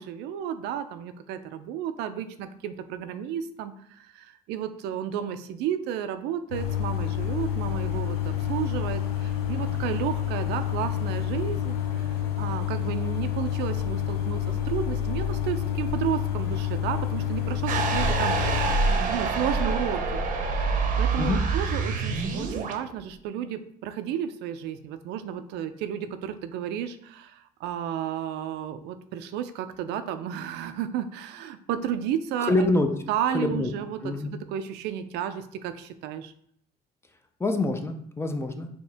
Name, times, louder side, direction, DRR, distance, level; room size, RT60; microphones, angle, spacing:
voice 1, 0.0-20.2 21.0-32.7 33.1-36.3, right 9 dB, 90° right, 10 dB, 0.4 m, -32 dB
sound 1, 6.5-18.7, left 10 dB, 80° left, 0.7 m, -28 dB
sound 2, 17.7-22.8, right 3 dB, 50° right, 0.7 m, -26 dB
voice 2, 32.4-32.9 33.3-33.7 34.0-34.4 37.4-38.7, left 2 dB, 15° left, 6 dB, 0.5 m, -25 dB
4.4 x 2.9 x 3.4 m, 0.67 s
cardioid pair, 110°, 17 cm